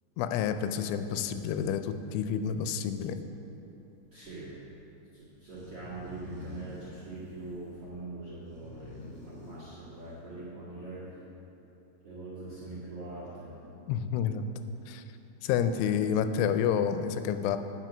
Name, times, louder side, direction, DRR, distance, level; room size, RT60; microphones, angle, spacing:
voice 1, 0.2-3.2 13.9-14.5 14.9-15.0 15.4-17.6, left 8 dB, 90° left, 9 dB, 3.0 m, -29 dB
sound 1, 0.8-1.0 1.3-1.4 1.8-1.9 2.4-2.5 2.9-3.0 3.2-3.5 4.2-4.3 4.8-4.9 5.2-10.4, left 2 dB, 20° left, 1.4 m, -48 dB
voice 2, 4.1-4.7 5.1-11.2 12.0-13.5, right 2 dB, 50° right, -8 dB, 1.8 m, -43 dB
9.2 x 7.9 x 5.9 m, 2.9 s
omnidirectional pair, 5.4 m